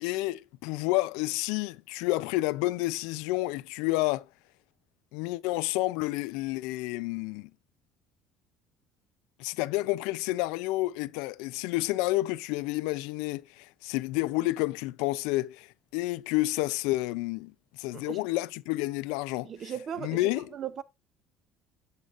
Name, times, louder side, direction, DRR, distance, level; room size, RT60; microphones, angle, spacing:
voice 1, 0.0-4.3 5.1-7.5 9.4-15.7 15.9-17.5 17.8-19.5 20.0-20.5, left 19 dB, 90° left, 0.4 m, -30 dB
voice 2, 19.4-20.2 20.5-20.8, right 8 dB, 40° right, 0.5 m, -37 dB
7.9 x 7.4 x 2.4 m
cardioid pair, 135°, 0 cm